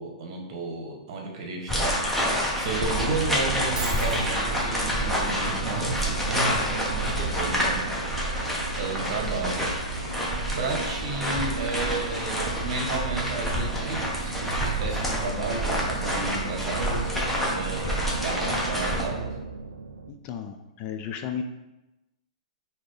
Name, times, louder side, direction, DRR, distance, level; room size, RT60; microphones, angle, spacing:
voice 1, 0.0-7.9 8.8-9.7 10.5-17.1 17.4-17.9 18.2-19.3, right 3 dB, 50° right, 1 dB, 1.0 m, -33 dB
sound 1, 1.7-19.0, equal, 5° left, 0.9 m, -28 dB
sound 2, 2.7-20.1, right 5 dB, 85° right, 0.3 m, -37 dB
Shatter, 3.8-4.3, right 3 dB, 25° right, 0.9 m, -34 dB
voice 2, 20.1-21.4, left 8 dB, 35° left, 6 dB, 0.4 m, -34 dB
4.1 x 2.8 x 3.2 m, 0.98 s
hypercardioid pair, 120°, 4 cm